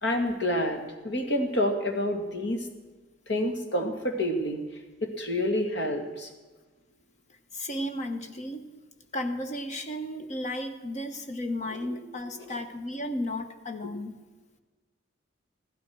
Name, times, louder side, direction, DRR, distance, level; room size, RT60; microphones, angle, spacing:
voice 1, 0.0-2.7 3.3-4.6 5.0-6.3 11.7-12.0 12.4-12.5, left 1 dB, 65° left, 4 dB, 2.1 m, -28 dB
voice 2, 7.5-8.6 9.1-14.2, left 1 dB, 40° left, 7 dB, 1.1 m, -34 dB
15.0 x 12.5 x 6.2 m, 1.3 s
head